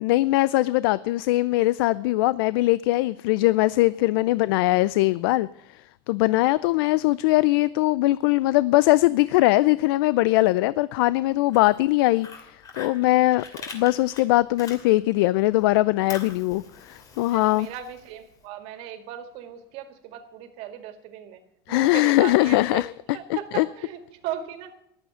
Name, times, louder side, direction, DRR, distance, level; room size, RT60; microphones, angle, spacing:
voice 1, 0.0-5.5 6.1-13.4 13.7-17.7 21.7-22.9 23.5-23.6, left 18 dB, 75° left, 18 dB, 0.5 m, -21 dB
Fire, 11.3-15.3 15.6-18.4, left 5 dB, 30° left, 2.6 m, -43 dB
voice 2, 17.3-21.4 21.7-22.8 23.1-24.7, right 10 dB, 55° right, 9 dB, 2.1 m, -37 dB
14.5 x 11.5 x 5.6 m, 0.78 s
supercardioid pair, 155°, 12 cm